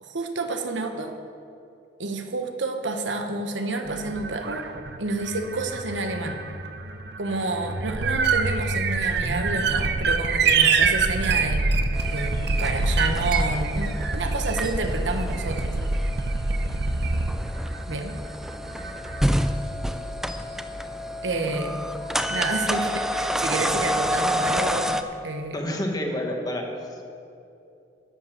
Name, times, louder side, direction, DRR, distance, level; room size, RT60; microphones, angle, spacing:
voice 1, 0.0-1.2 2.0-4.7 5.0-6.4 7.2-11.7 12.0-15.8 17.9-18.2 21.2-21.8 22.3-25.5, right 3 dB, 80° right, 6 dB, 1.0 m, -29 dB
sound 1, 3.9-19.3, right 4 dB, 60° right, 0.8 m, -26 dB
sound 2, 11.9-25.0, equal, ahead, 0.4 m, -29 dB
voice 2, 25.5-27.0, left 1 dB, 20° left, 2 dB, 1.4 m, -29 dB
11.5 x 7.6 x 7.5 m, 2.6 s
head